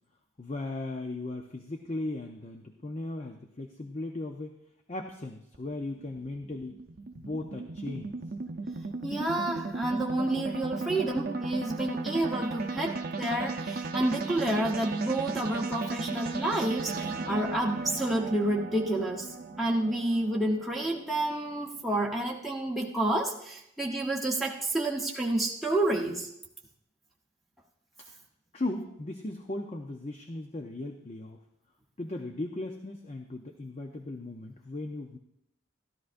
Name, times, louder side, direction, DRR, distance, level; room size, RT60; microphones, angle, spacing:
voice 1, 0.4-4.5 4.9-6.8 7.2-8.1 28.5-31.4 32.0-35.2, left 2 dB, 30° left, 4 dB, 0.6 m, -37 dB
sound 1, 5.5-21.9, right 3 dB, 45° right, 0.6 m, -36 dB
voice 2, 9.0-26.3, right 1 dB, ahead, -3 dB, 1.0 m, -29 dB
13.5 x 12.5 x 2.6 m, 0.79 s
head